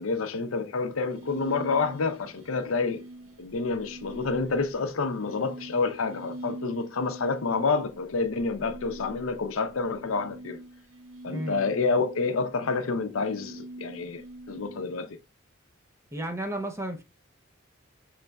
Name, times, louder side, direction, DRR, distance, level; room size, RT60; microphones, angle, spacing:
voice 1, 0.0-3.0 3.4-10.6 11.2-15.2, left 4 dB, 75° left, 0.6 m, -28 dB
sound 1, 1.1-15.1, right 1 dB, 75° right, 0.8 m, -44 dB
voice 2, 11.3-11.7 16.1-17.0, right 1 dB, 15° right, 0.5 m, -33 dB
6.3 x 3.2 x 2.2 m
head